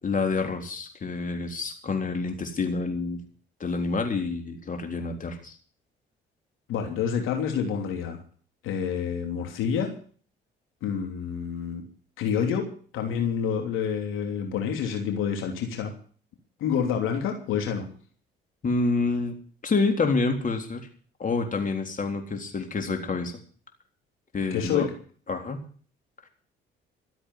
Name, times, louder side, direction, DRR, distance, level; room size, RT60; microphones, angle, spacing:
voice 1, 0.0-3.2 3.6-5.5 18.6-19.4 19.6-20.8 21.2-23.3 24.3-24.9 25.3-25.6, left 3 dB, 40° left, 4 dB, 3.7 m, -27 dB
voice 2, 6.7-8.2 8.6-9.9 10.8-11.8 12.2-15.9 16.6-17.9 24.5-24.9, left 7 dB, 80° left, 3 dB, 3.1 m, -28 dB
14.0 x 8.0 x 9.8 m, 0.44 s
supercardioid pair, 70°, 21 cm